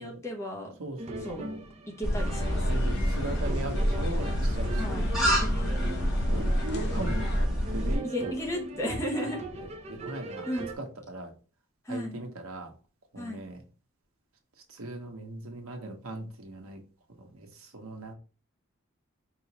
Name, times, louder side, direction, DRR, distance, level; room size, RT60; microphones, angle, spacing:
voice 1, 0.0-0.8 1.2-1.4 2.0-3.2 4.8-5.1 8.0-9.4 10.5-10.7 11.8-12.2 13.2-13.4, left 1 dB, 15° left, 0 dB, 0.8 m, -34 dB
voice 2, 0.8-1.6 2.7-5.8 6.2-8.3 9.5-10.5 10.8-11.3 11.9-12.7 13.1-13.6 14.7-16.8 17.2-18.1, right 2 dB, 90° right, 4 dB, 1.0 m, -39 dB
sound 1, 1.0-10.8, right 2 dB, 30° right, 0.5 m, -41 dB
sound 2, 2.0-8.0, equal, ahead, 1.6 m, -27 dB
sound 3, 2.3-7.4, left 3 dB, 50° left, 0.6 m, -37 dB
4.8 x 3.0 x 2.9 m, 0.35 s
head